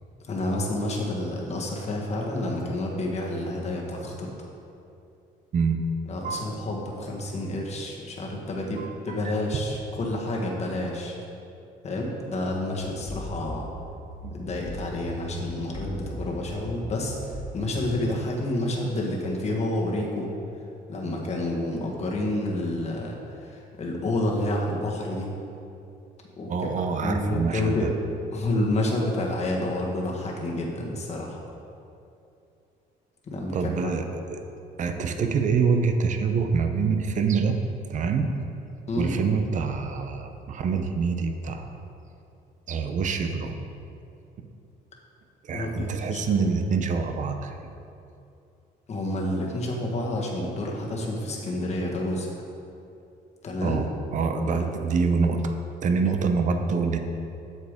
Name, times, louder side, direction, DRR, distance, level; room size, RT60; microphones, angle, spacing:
voice 1, 0.3-4.3 6.1-11.1 11.8-13.7 14.3-17.2 17.5-20.3 20.9-25.3 26.4-26.7 27.0-27.9 28.3-31.4 33.3-33.6 33.8-33.9 38.9-39.1 45.5-46.4 48.9-52.3 53.4-53.8 54.5-54.6, left 1 dB, 40° left, -1 dB, 1.5 m, -29 dB
voice 2, 8.8-9.3 14.2-14.3 26.5-27.9 33.5-34.4 34.8-37.6 37.9-38.3 39.0-41.7 42.7-43.6 45.4-47.7 53.6-57.0, right 5 dB, 45° right, 6 dB, 0.7 m, -26 dB
sound 1, 12.5-17.9, left 1 dB, 5° left, 2.0 m, -38 dB
8.2 x 7.3 x 3.6 m, 2.7 s
cardioid pair, 110°, 17 cm